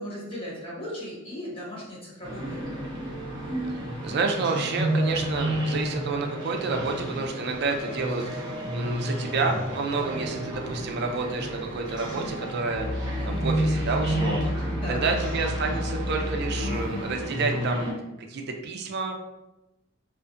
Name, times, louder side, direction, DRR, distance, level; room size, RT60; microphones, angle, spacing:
voice 1, 0.0-2.6 14.7-15.3, equal, 25° left, -7 dB, 0.9 m, -37 dB
sound 1, 2.2-17.9, right 1 dB, 20° right, 0.7 m, -31 dB
voice 2, 4.0-17.9 18.2-19.1, right 4 dB, 55° right, 3 dB, 0.3 m, -29 dB
Musical instrument, 12.7-17.2, left 1 dB, 75° left, 0.7 m, -31 dB
2.4 x 2.4 x 2.5 m, 0.97 s
head